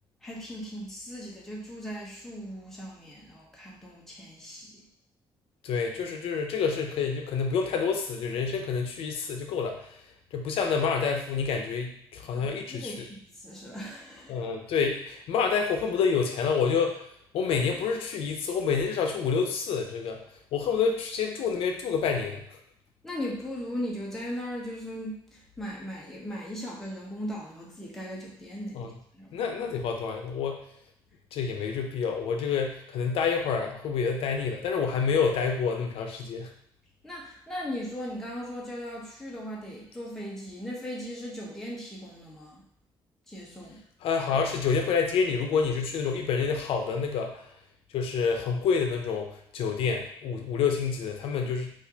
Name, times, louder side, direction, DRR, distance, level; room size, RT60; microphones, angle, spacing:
voice 1, 0.2-4.9 12.3-14.4 23.0-29.4 37.0-42.6 43.3-43.8, equal, 5° left, -5 dB, 0.8 m, -38 dB
voice 2, 5.6-10.0 10.3-13.1 14.3-17.0 17.3-20.2 20.5-22.6 28.7-28.9 29.3-30.6 31.3-36.5 44.0-47.4 47.9-51.7, left 5 dB, 85° left, 3 dB, 0.5 m, -28 dB
4.2 x 2.5 x 2.7 m, 0.70 s
cardioid pair, 165°, 9 cm